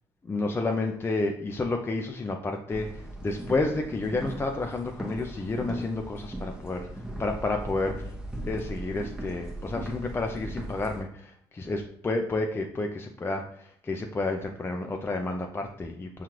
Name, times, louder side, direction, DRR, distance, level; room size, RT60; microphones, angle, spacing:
voice 1, 0.2-6.9 7.2-8.1 8.4-16.2, left 2 dB, 20° left, 3 dB, 0.4 m, -30 dB
sound 1, 2.7-11.0, right 1 dB, 5° right, 0.8 m, -38 dB
5.7 x 2.4 x 2.9 m, 0.67 s
hypercardioid pair, 65°, 12 cm